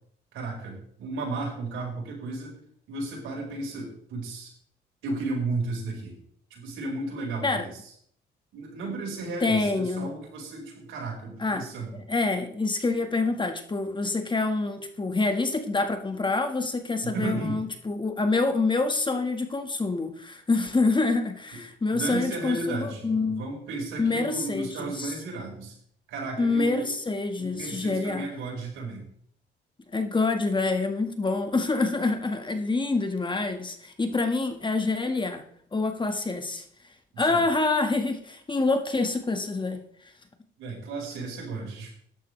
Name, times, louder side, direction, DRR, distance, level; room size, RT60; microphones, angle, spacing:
voice 1, 0.3-2.5 2.9-4.5 5.0-6.2 6.5-7.9 8.5-12.0 17.0-17.6 21.5-21.6 21.9-25.7 26.1-26.9 27.4-29.1 37.1-37.4 40.6-41.9, right 3 dB, 85° right, -1 dB, 5.1 m, -34 dB
voice 2, 9.4-10.1 11.4-11.6 12.1-23.4 24.0-25.1 26.4-28.3 29.9-35.4 35.7-36.6 37.2-39.8, left 3 dB, 25° left, 6 dB, 1.6 m, -26 dB
14.5 x 11.0 x 3.3 m, 0.65 s
cardioid pair, 90°, 20 cm